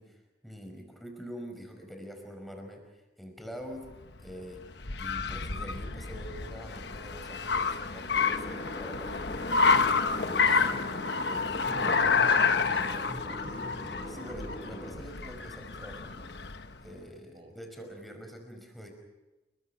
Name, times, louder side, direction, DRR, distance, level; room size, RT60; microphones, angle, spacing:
voice 1, 0.0-3.9 4.2-9.9 10.2-12.0 14.1-16.3 16.8-18.9, equal, ahead, 3 dB, 5.3 m, -45 dB
Car, 3.8-16.8, left 5 dB, 60° left, 1.2 m, -29 dB
sound 1, 8.1-14.9, left 1 dB, 35° left, 6.5 m, -42 dB
voice 2, 11.6-14.0 17.3-17.6, equal, 30° right, 5 dB, 5.4 m, -45 dB
30.0 x 23.0 x 5.8 m, 1.1 s
head